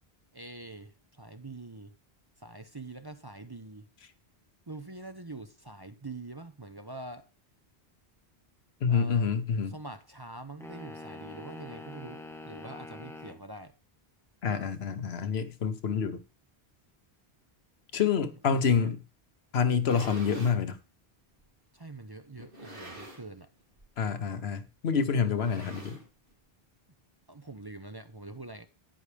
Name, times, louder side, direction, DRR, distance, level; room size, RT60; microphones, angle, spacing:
voice 1, 0.3-1.9 2.4-3.8 4.7-7.3 8.9-9.3 9.7-13.7 18.4-18.9 19.9-20.1 21.7-23.5 27.3-28.7, right 2 dB, 25° right, 0.7 m, -44 dB
voice 2, 8.8-9.7 14.4-16.2 17.9-19.0 19.5-20.8 24.0-26.0, left 6 dB, 75° left, 1.2 m, -27 dB
sound 1, 10.6-13.4, left 2 dB, 5° left, 1.1 m, -44 dB
sound 2, 19.8-20.6 21.4-21.5 22.4-23.4 23.7-24.0 24.3-24.4 25.2-26.3, equal, 60° right, 2.9 m, -46 dB
9.8 x 9.4 x 3.4 m
omnidirectional pair, 1.1 m